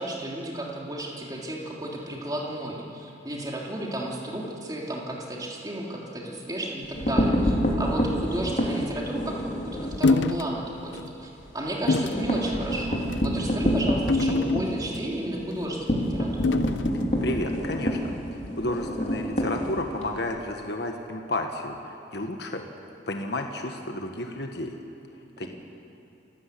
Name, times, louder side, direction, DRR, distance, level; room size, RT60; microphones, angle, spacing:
voice 1, 0.0-16.6 25.4-25.5, right 1 dB, 20° right, -3 dB, 3.3 m, -33 dB
sound 1, 6.8-10.0 10.4-10.6 10.9-11.0 11.3-20.2, equal, 40° left, 3.4 m, -27 dB
sound 2, 10.0-10.5 10.9-11.1 11.9-12.2 13.0-13.3 14.1-15.0 16.4-16.9, left 3 dB, 80° left, 0.7 m, -25 dB
voice 2, 17.2-22.7 23.1-24.8 25.4-25.5, left 1 dB, 60° left, 3 dB, 1.4 m, -32 dB
27.5 x 14.5 x 8.4 m, 2.7 s
head